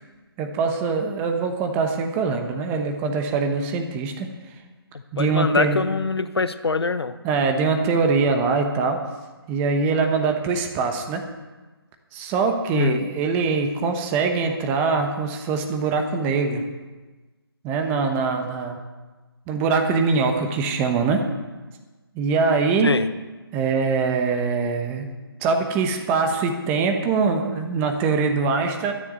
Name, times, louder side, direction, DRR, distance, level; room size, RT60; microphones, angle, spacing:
voice 1, 0.4-4.3 5.1-5.8 7.2-9.0 9.5-11.2 12.1-16.6 17.6-18.8 19.5-21.2 22.2-22.9 23.5-25.1 25.4-28.9, right 4 dB, 15° right, 5 dB, 1.0 m, -23 dB
voice 2, 4.9-7.2 12.7-13.0 22.8-23.1, left 4 dB, 80° left, 12 dB, 1.0 m, -24 dB
13.0 x 7.2 x 9.5 m, 1.3 s
figure-of-eight pair, 155°, 13 cm